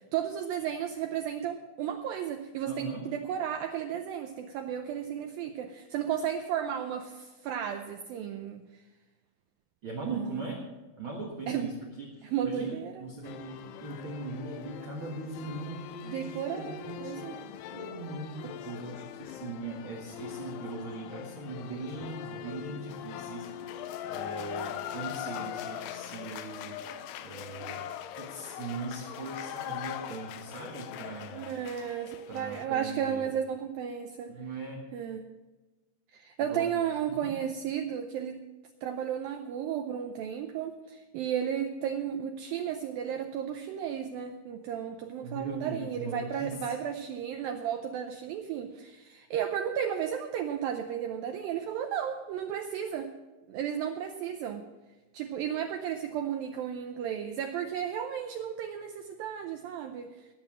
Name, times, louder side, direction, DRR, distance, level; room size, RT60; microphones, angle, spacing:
voice 1, 0.1-8.8 10.1-10.5 11.5-11.7 12.2-12.9 16.0-17.4 31.3-34.4 34.9-35.3 36.1-38.4 38.8-53.1 53.5-54.7 55.1-60.3, right 9 dB, 90° right, 6 dB, 2.0 m, -34 dB
voice 2, 2.7-3.1 5.2-5.3 9.8-10.6 11.0-17.5 17.7-23.7 24.1-26.8 27.2-27.8 28.1-31.5 32.3-33.2 34.3-34.8 36.5-36.7 37.1-37.3 45.2-46.5, right 3 dB, 65° right, 0 dB, 1.3 m, -40 dB
sound 1, 13.2-32.7, left 11 dB, 80° left, 2.6 m, -41 dB
17.5 x 7.5 x 6.2 m, 1.2 s
omnidirectional pair, 5.0 m